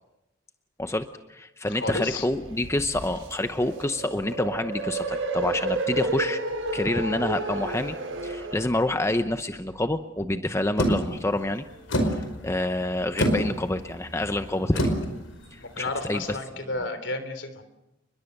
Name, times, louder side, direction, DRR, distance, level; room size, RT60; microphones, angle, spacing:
voice 1, 0.8-6.4 6.7-8.0 8.2-11.6 12.0-14.9 15.5-16.4, left 1 dB, 15° left, 8 dB, 0.8 m, -27 dB
voice 2, 1.7-2.3 15.6-17.6, left 2 dB, 65° left, 10 dB, 3.4 m, -32 dB
sound 1, 2.1-8.7, right 2 dB, 90° right, 5.3 m, -31 dB
sound 2, 10.8-16.4, equal, 90° left, 5.2 m, -29 dB
30.0 x 22.0 x 6.7 m, 0.94 s
head